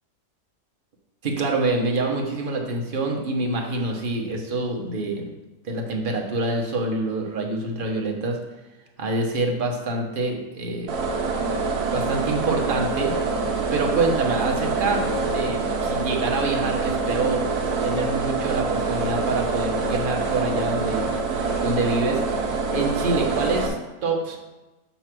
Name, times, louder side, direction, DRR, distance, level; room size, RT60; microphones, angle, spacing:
voice 1, 1.2-5.2 5.6-8.4 9.0-11.0 11.9-13.1 13.7-15.1 15.3-17.4 17.8-21.1 21.6-22.2 22.7-23.8 24.0-24.4, right 2 dB, 40° right, 1 dB, 1.0 m, -26 dB
sound 1, 10.9-23.7, right 4 dB, 75° right, 1.3 m, -25 dB
6.7 x 3.1 x 6.0 m, 1.1 s
omnidirectional pair, 1.7 m